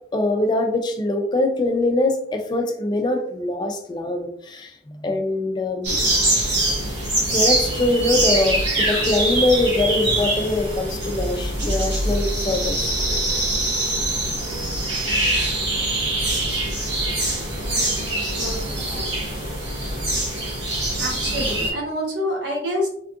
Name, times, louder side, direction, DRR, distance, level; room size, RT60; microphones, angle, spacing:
voice 1, 0.1-6.3 7.3-13.0, left 2 dB, 25° left, 4 dB, 0.3 m, -23 dB
sound 1, 5.8-21.7, right 1 dB, 90° right, 1.4 m, -23 dB
voice 2, 21.0-22.9, equal, 75° right, -2 dB, 1.1 m, -26 dB
3.5 x 2.4 x 2.4 m, 0.69 s
head